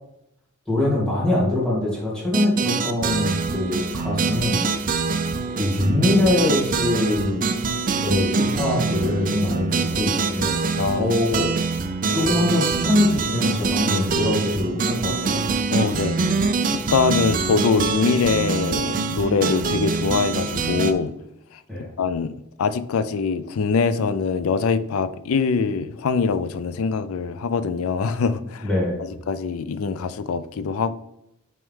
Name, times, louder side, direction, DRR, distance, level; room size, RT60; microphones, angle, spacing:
voice 1, 0.7-4.6 5.6-7.5 8.0-10.5 10.9-11.5 12.1-15.5 21.7-21.9 28.6-29.0, left 1 dB, 5° left, 2.4 m, -23 dB
sound 1, 2.3-20.9, right 4 dB, 40° right, 0.5 m, -24 dB
voice 2, 10.8-11.1 15.7-16.4 16.7-21.1 22.0-22.3 22.6-28.7 29.0-31.0, left 5 dB, 75° left, 0.4 m, -23 dB
6.1 x 4.5 x 3.6 m
head